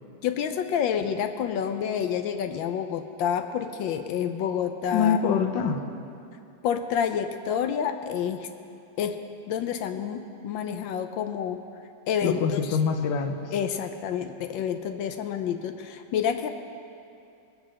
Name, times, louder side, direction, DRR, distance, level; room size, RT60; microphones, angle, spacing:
voice 1, 0.2-5.4 6.6-8.5 9.0-9.2 9.5-11.6 12.1-12.8 13.5-16.5, left 8 dB, 90° left, 7 dB, 1.4 m, -28 dB
voice 2, 4.9-5.8 12.2-13.5, left 6 dB, 75° left, 7 dB, 1.4 m, -25 dB
22.0 x 7.7 x 6.3 m, 2.6 s
omnidirectional pair, 2.0 m